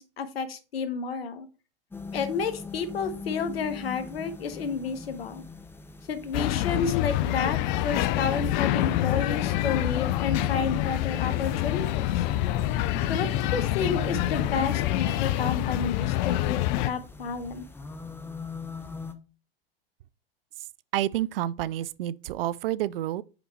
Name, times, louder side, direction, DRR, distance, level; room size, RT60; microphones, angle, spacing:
voice 1, 0.0-1.5 2.1-5.4 6.1-12.2 13.1-17.6, left 5 dB, 85° left, 1.1 m, -31 dB
sound 1, 1.9-19.1, left 3 dB, 5° left, 0.6 m, -40 dB
sound 2, 6.3-16.9, left 15 dB, 50° left, 0.5 m, -26 dB
voice 2, 20.9-23.2, right 13 dB, 70° right, 0.5 m, -29 dB
5.1 x 5.0 x 4.3 m
hypercardioid pair, 110°, 29 cm